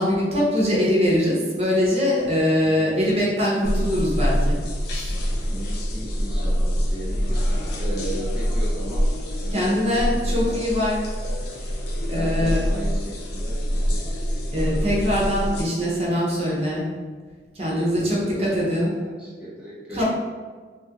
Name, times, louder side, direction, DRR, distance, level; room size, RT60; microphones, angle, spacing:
voice 1, 0.0-4.6 4.9-5.1 9.5-10.9 12.1-12.6 14.5-16.8 17.5-18.9 19.9-20.0, left 1 dB, 35° right, -5 dB, 0.8 m, -22 dB
sound 1, 3.6-15.6, equal, 65° left, 0.5 m, -25 dB
voice 2, 5.5-7.5 7.8-9.0 9.4-9.8 10.4-10.6 12.1-13.6 17.6-18.5 18.8-20.0, right 1 dB, 5° right, -10 dB, 0.6 m, -36 dB
2.8 x 2.4 x 2.8 m, 1.5 s
head